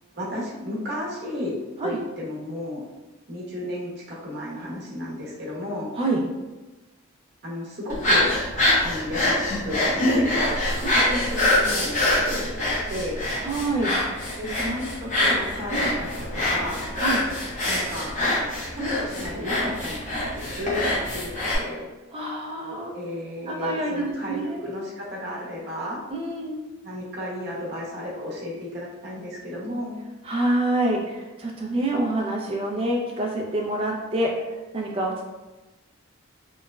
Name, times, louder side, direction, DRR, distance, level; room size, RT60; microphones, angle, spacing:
voice 1, 0.1-1.6 1.8-2.8 3.3-5.9 7.4-8.3 8.8-10.6 10.9-13.3 14.4-16.9 17.6-18.2 18.8-20.8 21.1-21.9 22.9-26.0 26.8-30.0, left 1 dB, 50° right, -6 dB, 0.7 m, -33 dB
sound 1, 7.9-21.6, left 1 dB, 35° left, 0.5 m, -24 dB
voice 2, 13.4-13.9 15.7-15.9 17.0-17.2 22.1-22.9 23.4-24.6 26.1-26.6 30.2-34.3 34.7-35.2, right 1 dB, 25° right, 0 dB, 0.3 m, -26 dB
2.9 x 2.1 x 2.3 m, 1.1 s
head